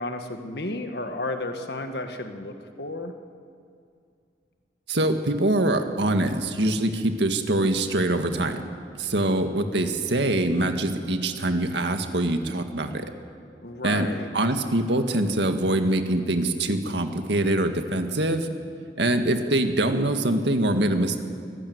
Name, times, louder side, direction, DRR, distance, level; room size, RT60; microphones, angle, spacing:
voice 1, 0.0-3.1 13.6-14.3, left 2 dB, 65° left, 6 dB, 1.8 m, -32 dB
voice 2, 4.9-8.6 9.0-13.1 13.8-18.5 19.0-21.2, right 1 dB, 80° right, 6 dB, 1.9 m, -24 dB
24.0 x 16.0 x 9.5 m, 2.3 s
head